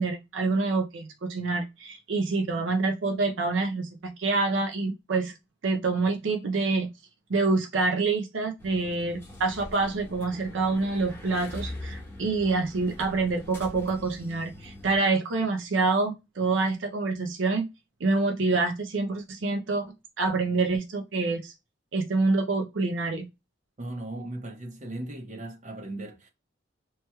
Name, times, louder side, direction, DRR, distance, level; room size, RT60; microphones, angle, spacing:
voice 1, 0.0-5.3 5.6-6.9 7.3-17.7 18.0-21.5 21.9-23.3, right 3 dB, 75° right, 0.5 m, -27 dB
sound 1, 8.6-15.0, left 1 dB, 15° left, 1.1 m, -42 dB
voice 2, 23.8-26.3, right 1 dB, 40° right, 0.8 m, -37 dB
3.0 x 2.9 x 2.2 m
head